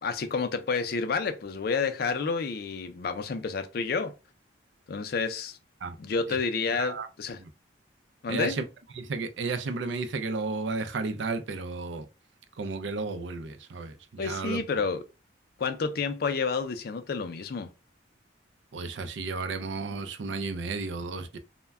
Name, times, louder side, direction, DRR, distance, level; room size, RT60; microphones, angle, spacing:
voice 1, 0.0-4.1 4.9-5.6 6.0-7.4 8.2-8.6 14.2-15.0 15.6-17.7, left 5 dB, 55° left, 0.4 m, -29 dB
voice 2, 6.7-7.1 7.4-7.5 8.3-8.6 8.9-12.1 12.6-14.6 18.7-21.4, right 3 dB, 75° right, 0.4 m, -33 dB
2.1 x 2.1 x 3.4 m
head